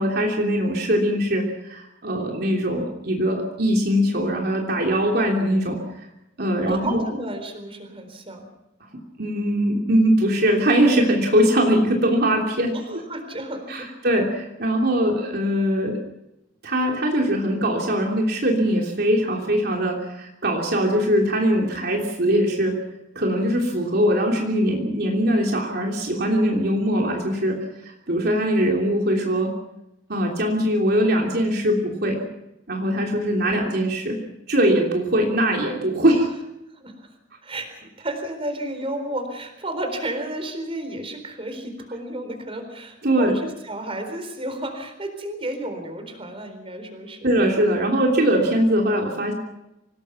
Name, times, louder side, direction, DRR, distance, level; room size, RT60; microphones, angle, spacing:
voice 1, 0.0-5.8 6.4-7.0 9.2-13.0 13.7-16.0 16.6-22.8 23.1-27.6 27.8-29.5 30.1-32.2 32.7-34.2 34.5-36.3 43.0-43.3 47.2-49.3, equal, 55° right, 1 dB, 3.2 m, -21 dB
voice 2, 6.7-8.5 12.7-13.9 33.5-33.7 36.7-37.1 37.4-47.3, right 1 dB, 30° right, 7 dB, 4.1 m, -32 dB
26.0 x 19.0 x 5.9 m, 0.89 s
head